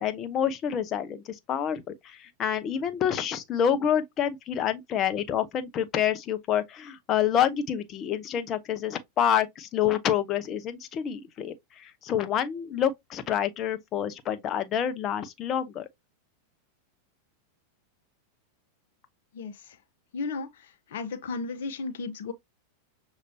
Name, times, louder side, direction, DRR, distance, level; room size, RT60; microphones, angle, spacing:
voice 1, 0.0-15.8, left 9 dB, 35° left, 0.8 m, -28 dB
voice 2, 20.1-20.5 20.9-22.3, left 4 dB, 70° left, 0.8 m, -33 dB
6.6 x 3.0 x 2.7 m
hypercardioid pair, 100°, 0 cm